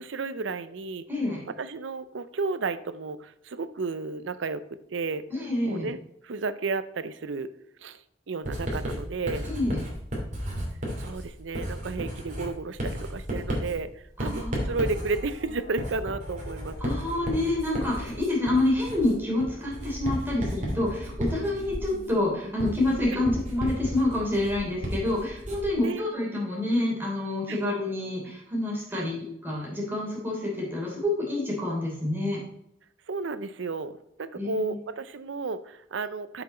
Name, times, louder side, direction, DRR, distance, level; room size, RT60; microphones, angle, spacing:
voice 1, 0.0-1.0 1.5-4.6 4.9-5.3 5.7-7.5 7.8-8.0 8.3-9.5 11.0-13.9 14.2-16.9 25.8-26.1 27.5-27.6 28.9-29.1 33.1-36.4, right 3 dB, 80° right, 14 dB, 0.6 m, -32 dB
voice 2, 1.1-1.4 5.3-5.9 9.4-9.8 14.2-14.7 16.8-32.4 34.3-34.8, left 2 dB, 10° right, -4 dB, 3.2 m, -28 dB
Writing, 8.5-25.8, equal, 40° right, 2.6 m, -34 dB
sound 1, 14.3-26.0, left 1 dB, 70° left, 1.9 m, -47 dB
7.7 x 6.1 x 4.3 m, 0.77 s
head